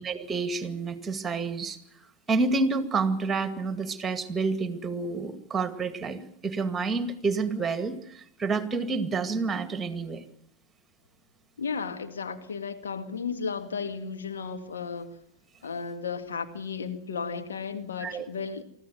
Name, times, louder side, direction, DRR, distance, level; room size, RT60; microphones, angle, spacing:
voice 1, 0.0-1.8 2.3-10.2 18.0-18.3, right 4 dB, 15° right, 11 dB, 2.1 m, -29 dB
voice 2, 11.6-15.1 15.6-18.6, left 5 dB, 70° left, 7 dB, 2.0 m, -34 dB
24.0 x 14.5 x 9.2 m, 0.71 s
figure-of-eight pair, 90°, 0 cm